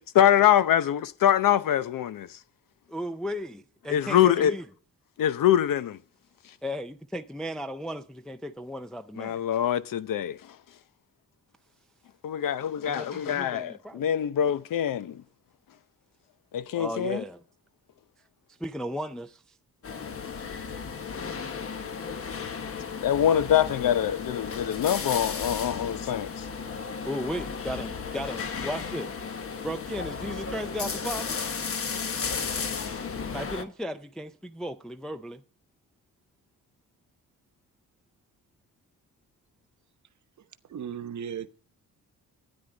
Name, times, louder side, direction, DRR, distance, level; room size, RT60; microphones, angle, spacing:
voice 1, 0.1-2.3 3.9-4.5 5.2-6.0 9.2-10.4 12.2-15.2 16.5-17.2 23.0-26.4, left 10 dB, 65° left, 0.8 m, -24 dB
voice 2, 2.9-4.7 6.6-9.4 12.8-14.0 16.8-17.4 18.6-19.4 27.1-29.1 29.6-31.4 33.3-35.4, equal, ahead, 0.4 m, -35 dB
sound 1, 19.8-33.6, left 5 dB, 40° left, 1.2 m, -34 dB
voice 3, 40.7-41.5, right 8 dB, 55° right, 1.0 m, -35 dB
13.0 x 9.9 x 3.9 m
wide cardioid pair, 160°, 35 cm